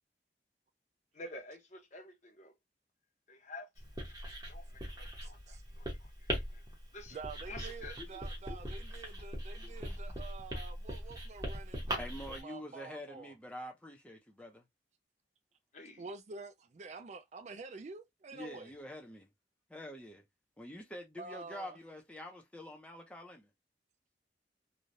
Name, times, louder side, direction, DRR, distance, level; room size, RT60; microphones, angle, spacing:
voice 1, 1.1-2.5 3.3-6.6 6.9-7.2 7.5-8.0 15.7-16.1, left 2 dB, 40° left, 0.9 m, -50 dB
Writing, 3.8-12.4, equal, 20° right, 1.0 m, -41 dB
voice 2, 5.2-5.6 7.1-13.4 16.0-18.7 21.2-21.8, right 4 dB, 40° right, 0.4 m, -48 dB
voice 3, 12.0-14.6 18.3-19.3 19.7-20.2 20.6-23.5, left 1 dB, 5° left, 0.7 m, -46 dB
3.2 x 2.3 x 2.6 m
head